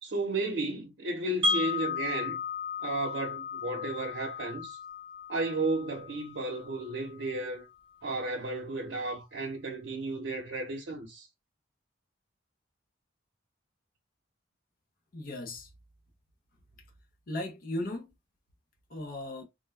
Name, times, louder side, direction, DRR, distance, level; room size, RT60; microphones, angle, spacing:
voice 1, 0.0-2.4 2.8-4.8 5.3-7.7 8.0-11.3, right 2 dB, 75° right, 0.7 m, -33 dB
Wind chime, 1.4-7.4, left 4 dB, 25° right, 0.6 m, -35 dB
voice 2, 15.1-15.7 17.3-18.1 18.9-19.4, left 1 dB, 45° left, 0.5 m, -36 dB
2.2 x 2.1 x 3.1 m
head